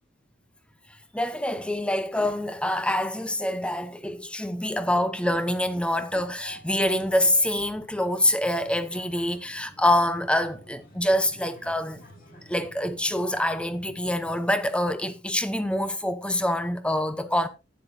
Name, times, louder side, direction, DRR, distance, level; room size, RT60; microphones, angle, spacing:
voice 1, 1.1-12.0 12.5-17.5, left 1 dB, 5° left, 0.9 m, -25 dB
sound 1, 5.5-14.5, equal, 50° left, 5.8 m, -50 dB
12.5 x 10.0 x 2.8 m
head